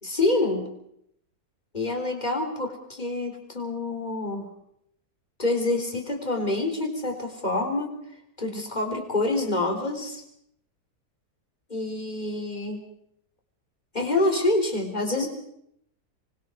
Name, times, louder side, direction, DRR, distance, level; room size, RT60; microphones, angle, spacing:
voice 1, 0.0-0.7 1.7-4.5 5.4-8.0 8.4-10.2 11.7-12.9 13.9-15.3, left 2 dB, 25° left, 3 dB, 4.1 m, -27 dB
26.5 x 24.0 x 4.7 m, 0.72 s
omnidirectional pair, 1.8 m